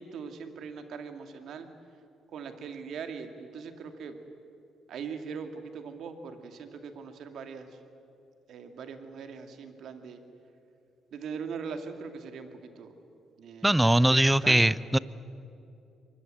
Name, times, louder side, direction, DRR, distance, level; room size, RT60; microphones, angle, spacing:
voice 1, 0.0-1.7 2.3-4.2 4.9-7.8 8.5-10.2 11.1-13.0 13.4-13.7 14.1-14.8, right 6 dB, 65° right, 7 dB, 2.2 m, -41 dB
voice 2, 13.6-15.0, right 1 dB, 10° right, 19 dB, 0.7 m, -21 dB
24.0 x 20.0 x 8.7 m, 2.7 s
supercardioid pair, 55°, 0 cm